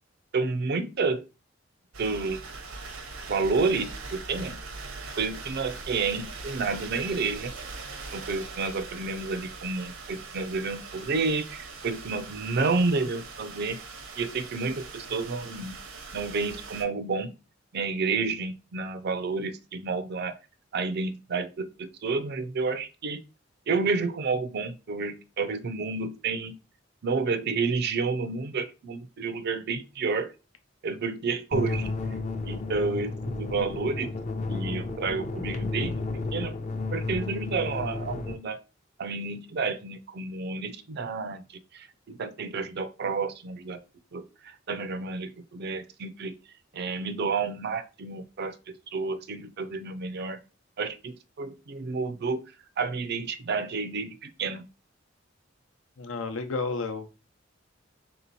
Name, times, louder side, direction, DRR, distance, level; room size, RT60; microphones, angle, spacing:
voice 1, 0.3-1.2 2.0-2.4 3.3-4.6 5.1-7.5 8.1-13.8 14.2-15.8 16.1-17.3 17.7-20.3 20.7-23.2 23.7-26.6 27.0-30.3 30.8-31.9 32.4-34.1 34.5-36.0 36.3-36.5 36.9-38.6 39.0-41.4 41.7-43.8 44.1-44.2 44.7-46.4 46.7-50.4 50.8-52.4 52.8-54.7, right 4 dB, 55° right, 12 dB, 0.5 m, -30 dB
sound 1, 1.9-16.8, right 4 dB, 80° right, 0.8 m, -41 dB
voice 2, 15.1-15.6 31.5-31.6 56.0-57.2, left 3 dB, 85° left, 8 dB, 0.7 m, -33 dB
sound 2, 31.5-38.4, left 3 dB, 35° left, 0.5 m, -32 dB
3.5 x 2.9 x 4.0 m, 0.31 s
head